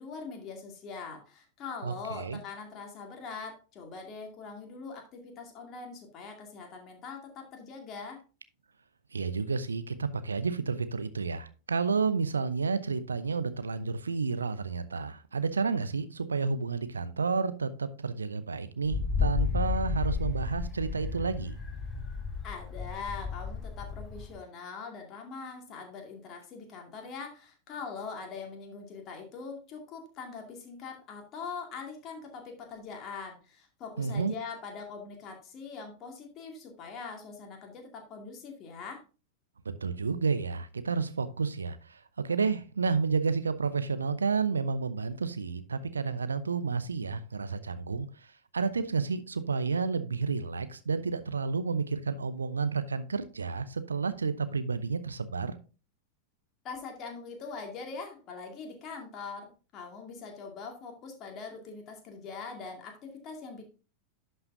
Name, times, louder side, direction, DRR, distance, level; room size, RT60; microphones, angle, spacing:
voice 1, 0.0-8.2 22.4-39.0 56.6-63.7, left 5 dB, 35° left, 2.2 m, -42 dB
voice 2, 1.8-2.4 9.1-21.6 34.0-34.3 39.6-48.1 48.5-55.5, right 5 dB, 75° right, 0.7 m, -31 dB
Wind, 18.8-24.4, left 5 dB, 15° left, 4.6 m, -33 dB
11.0 x 5.7 x 2.7 m
figure-of-eight pair, 90°, 0 cm